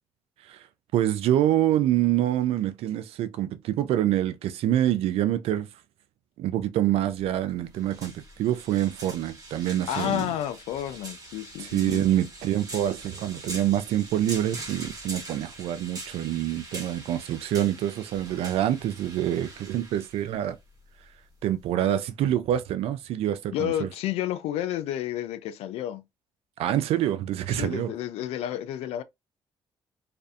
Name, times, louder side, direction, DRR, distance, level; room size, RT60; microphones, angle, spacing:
voice 1, 0.9-5.7 6.4-10.3 11.6-20.6 21.4-23.9 26.6-27.9, right 12 dB, 80° right, 0.4 m, -26 dB
sound 1, 7.1-21.7, right 2 dB, 35° right, 1.2 m, -43 dB
voice 2, 9.9-12.1 23.5-26.0 27.6-29.0, left 12 dB, 85° left, 0.4 m, -30 dB
2.5 x 2.5 x 2.3 m
supercardioid pair, 65°, 10 cm